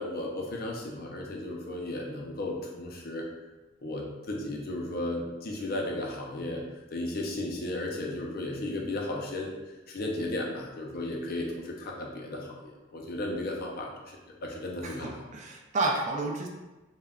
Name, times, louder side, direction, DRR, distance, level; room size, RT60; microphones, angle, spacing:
voice 1, 0.0-3.3 3.8-6.6 6.9-9.5 9.9-15.3, left 1 dB, 50° left, 0 dB, 0.5 m, -35 dB
voice 2, 14.8-16.5, right 2 dB, 40° right, 1 dB, 0.3 m, -31 dB
2.2 x 2.1 x 3.5 m, 1.1 s
head